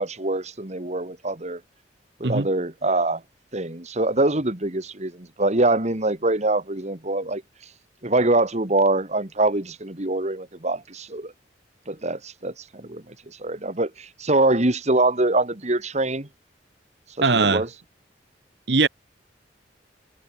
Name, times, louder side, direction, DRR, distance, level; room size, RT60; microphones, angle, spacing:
voice 1, 0.0-1.6 2.2-3.2 3.5-7.4 8.0-11.3 11.9-13.1 13.4-16.3 17.2-17.7, right 2 dB, 40° right, 2.2 m, -24 dB
voice 2, 17.2-17.6 18.7-18.9, right 4 dB, 65° right, 1.2 m, -20 dB
head